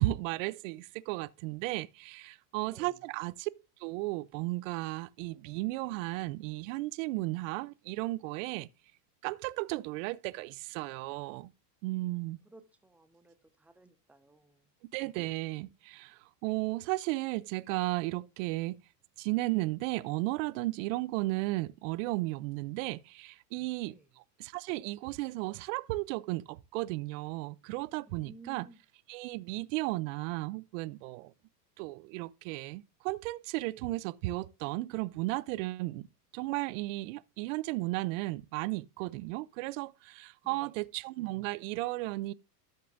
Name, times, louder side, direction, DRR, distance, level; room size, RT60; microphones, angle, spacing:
voice 1, 0.0-3.5 3.8-8.7 9.2-11.5 11.8-12.4 14.9-18.8 19.2-23.9 24.4-28.7 29.1-31.3 31.8-36.1 36.3-42.3, right 20 dB, 55° right, 0.5 m, -34 dB
voice 2, 2.6-3.0 12.0-14.7 23.9-24.1 28.1-28.8 40.5-40.7, right 2 dB, 5° right, 0.8 m, -56 dB
12.5 x 6.7 x 2.5 m
supercardioid pair, 130°, 49 cm